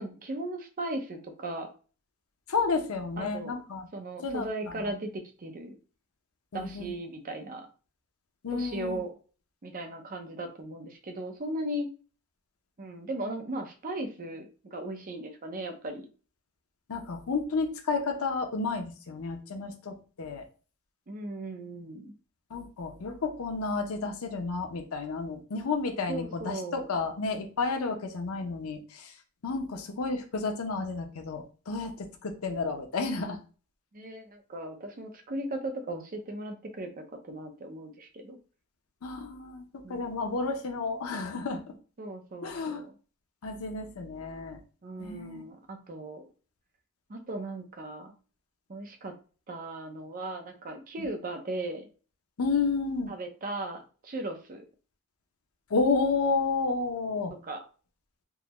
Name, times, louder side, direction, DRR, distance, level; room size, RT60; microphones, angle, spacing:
voice 1, 0.0-1.7 3.2-3.6 3.9-5.8 6.5-7.7 8.5-9.1 9.6-11.9 12.8-16.1 21.1-22.1 26.1-26.9 33.9-38.4 39.8-40.1 42.0-42.9 44.8-46.3 47.1-48.1 48.7-49.1 49.5-51.9 53.1-54.6 57.4-57.6, right 1 dB, 40° right, 5 dB, 0.6 m, -37 dB
voice 2, 2.5-3.9 4.2-4.5 6.5-6.9 8.4-9.0 16.9-20.4 22.5-29.1 29.4-33.4 39.0-41.6 42.4-42.8 43.4-44.6 45.0-45.4 52.4-53.1 55.7-57.3, left 4 dB, 80° left, 5 dB, 0.6 m, -31 dB
3.6 x 2.1 x 2.9 m, 0.37 s
head